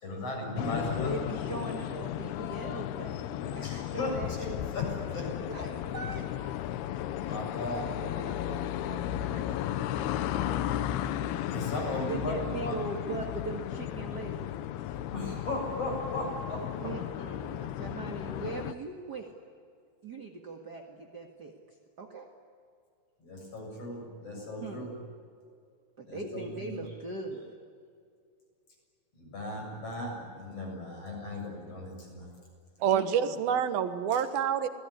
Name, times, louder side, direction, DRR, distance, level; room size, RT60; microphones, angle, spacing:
voice 1, 0.0-1.2 3.6-5.3 7.2-7.9 11.5-12.7 14.9-16.9 23.2-24.9 26.1-26.8 29.2-32.3, left 1 dB, 35° left, 1 dB, 8.0 m, -36 dB
sound 1, 0.6-18.7, left 12 dB, 80° left, 2.9 m, -34 dB
voice 2, 0.9-4.3 5.0-6.2 8.0-9.0 9.3-10.2 12.1-14.6 14.8-15.0 16.8-19.3 20.0-21.5 22.0-22.3 24.6-24.9 26.0-27.6 32.9-33.4, right 3 dB, 40° right, 1 dB, 1.5 m, -41 dB
voice 3, 32.8-34.7, right 8 dB, 70° right, 9 dB, 3.1 m, -27 dB
27.5 x 19.5 x 9.9 m, 2.3 s
omnidirectional pair, 4.6 m